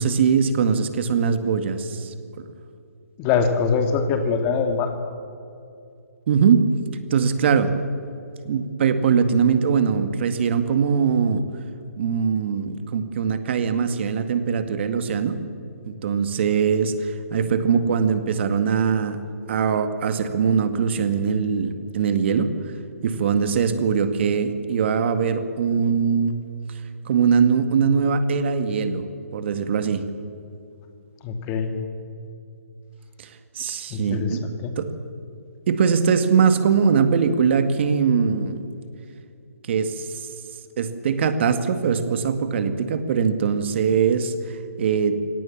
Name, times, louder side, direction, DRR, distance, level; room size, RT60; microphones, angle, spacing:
voice 1, 0.0-2.5 6.3-6.7 7.1-7.7 8.5-11.4 12.0-15.4 15.9-19.2 19.5-22.5 23.0-26.4 27.1-29.1 29.3-30.0 33.2-34.4 34.8-34.9 35.7-38.6 39.7-40.2 40.8-45.2, right 6 dB, 50° right, 9 dB, 2.0 m, -21 dB
voice 2, 3.2-4.9 31.2-31.7 33.6-34.7, left 5 dB, 25° left, 6 dB, 2.4 m, -23 dB
24.0 x 18.0 x 7.4 m, 2.6 s
hypercardioid pair, 145°, 8 cm